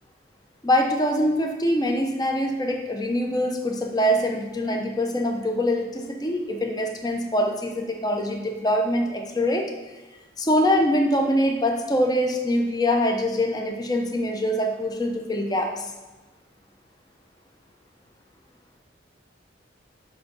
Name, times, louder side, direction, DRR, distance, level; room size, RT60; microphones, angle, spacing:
voice 1, 0.6-9.7 10.4-15.9, equal, 20° left, 2 dB, 0.6 m, -24 dB
8.1 x 3.5 x 5.4 m, 1.2 s
head